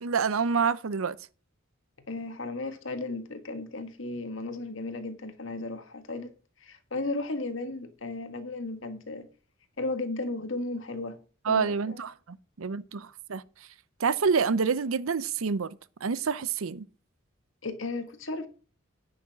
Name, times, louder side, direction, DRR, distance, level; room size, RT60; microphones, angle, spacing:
voice 1, 0.0-1.2 11.5-13.4 14.0-16.8, right 5 dB, 80° right, 0.6 m, -28 dB
voice 2, 2.1-6.3 6.6-9.3 9.8-11.2 11.5-12.0 17.6-18.5, left 2 dB, 65° left, 1.7 m, -35 dB
9.8 x 6.0 x 6.1 m
head